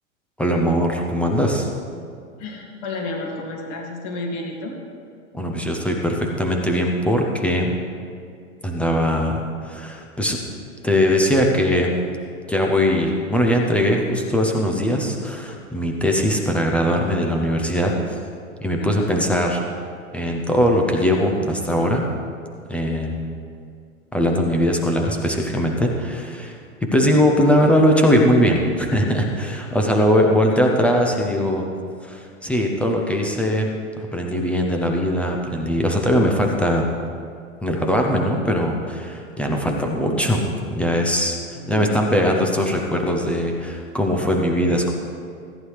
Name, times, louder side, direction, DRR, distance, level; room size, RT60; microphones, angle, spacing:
voice 1, 0.4-1.7 5.3-7.7 8.6-10.4 10.8-11.9 12.5-18.2 18.6-19.6 20.1-22.0 22.7-23.4 24.1-31.6 32.0-33.7 34.1-36.8 37.6-41.4 41.7-44.9, equal, 5° left, 1 dB, 0.3 m, -20 dB
voice 2, 2.4-4.8 18.8-19.1 30.7-30.8 41.5-42.0, left 2 dB, 45° left, 1 dB, 2.1 m, -31 dB
14.0 x 9.5 x 3.2 m, 2.3 s
hypercardioid pair, 110°, 41 cm